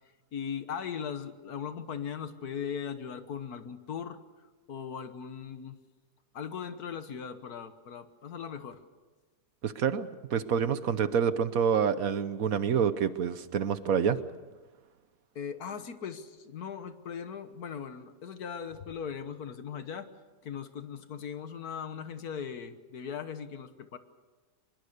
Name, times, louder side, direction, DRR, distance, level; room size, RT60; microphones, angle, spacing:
voice 1, 0.3-4.2 4.7-5.8 6.3-8.8 15.4-20.1 20.4-24.0, left 7 dB, 65° left, 10 dB, 1.7 m, -39 dB
voice 2, 9.6-14.2, right 7 dB, 60° right, 13 dB, 1.2 m, -27 dB
23.5 x 22.0 x 6.7 m, 1.3 s
omnidirectional pair, 1.8 m